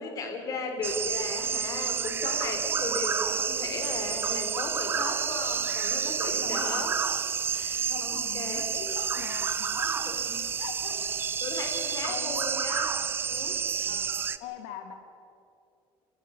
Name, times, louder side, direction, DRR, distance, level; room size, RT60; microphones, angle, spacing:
voice 1, 0.0-6.9 7.5-8.6 9.8-10.5 10.9-11.0 11.4-13.0 13.2-13.6, left 3 dB, 35° left, 4 dB, 3.5 m, -36 dB
sound 1, 0.8-14.4, right 6 dB, 20° right, 0.6 m, -30 dB
voice 2, 6.4-6.9 7.9-10.0 10.6-11.2 11.6-12.4 13.8-14.9, left 8 dB, 90° left, 6 dB, 1.8 m, -42 dB
29.0 x 12.0 x 8.8 m, 2.6 s
cardioid pair, 165°, 10 cm